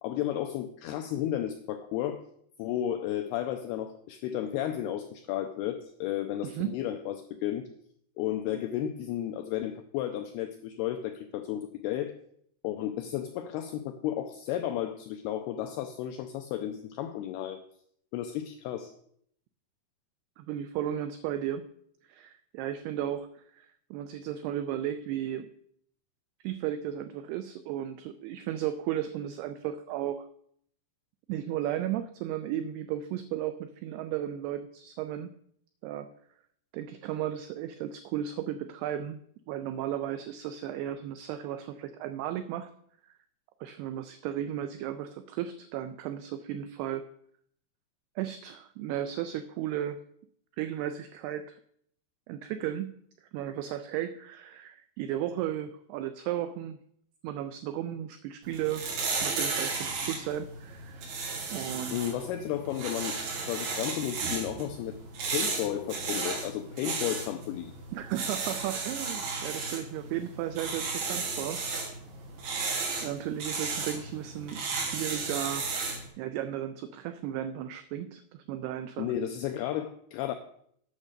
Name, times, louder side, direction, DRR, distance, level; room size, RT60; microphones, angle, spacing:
voice 1, 0.0-2.2 2.6-7.7 8.2-12.1 12.6-17.6 18.1-18.9 61.9-63.2 63.5-65.0 65.3-67.7 79.0-80.3, left 11 dB, 90° left, 7 dB, 2.2 m, -33 dB
voice 2, 6.4-6.8 20.4-21.7 22.0-25.5 26.4-30.3 31.3-35.3 35.8-36.1 36.7-39.2 39.5-42.7 43.0-43.1 43.6-47.0 48.2-50.0 50.6-51.6 52.3-52.9 53.2-56.8 57.2-58.9 59.2-61.1 61.5-62.2 67.9-71.6 73.0-75.8 76.2-79.1, right 11 dB, 90° right, 9 dB, 2.3 m, -35 dB
sound 1, 58.4-76.1, right 4 dB, 65° right, 3.9 m, -34 dB
8.7 x 6.4 x 6.5 m, 0.68 s
omnidirectional pair, 5.2 m